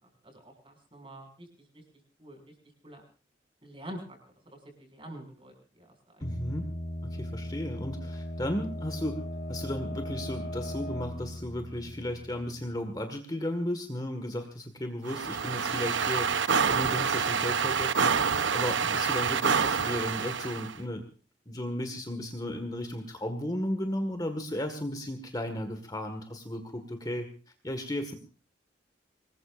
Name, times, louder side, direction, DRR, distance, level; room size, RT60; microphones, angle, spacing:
voice 1, 0.0-1.5 1.7-1.8 2.2-2.5 2.8-3.0 3.6-4.2 4.4-6.4, right 1 dB, 30° right, 4 dB, 6.3 m, -47 dB
sound 1, 6.2-12.8, left 1 dB, 45° left, 1.9 m, -38 dB
voice 2, 6.2-6.6 7.0-9.2 9.5-16.3 16.7-18.1 18.5-21.0 21.5-27.3 27.6-28.1, left 1 dB, 20° left, 6 dB, 1.8 m, -34 dB
sound 2, 15.0-20.7, right 6 dB, 85° right, 0.9 m, -27 dB
26.0 x 20.0 x 2.6 m, 0.37 s
head